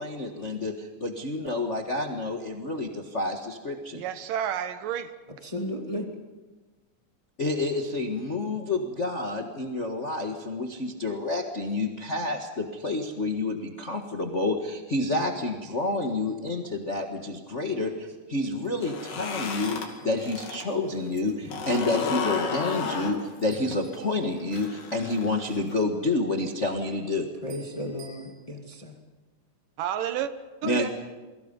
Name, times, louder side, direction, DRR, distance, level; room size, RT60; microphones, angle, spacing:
voice 1, 0.0-4.0 7.4-27.3 30.6-30.9, left 2 dB, 40° left, 2 dB, 1.0 m, -29 dB
voice 2, 4.0-5.1 29.8-30.3 30.6-30.9, right 10 dB, 80° right, 11 dB, 2.7 m, -30 dB
voice 3, 5.4-6.1 27.4-29.0, left 1 dB, 15° left, 2 dB, 1.3 m, -34 dB
sound 1, 16.3-16.7 19.6-21.0 23.5-24.8 27.5-28.3, right 5 dB, 50° right, 6.0 m, -54 dB
sound 2, 18.7-20.6 21.0-25.7, left 5 dB, 75° left, 4.0 m, -33 dB
29.5 x 23.0 x 5.4 m, 1.3 s
omnidirectional pair, 3.9 m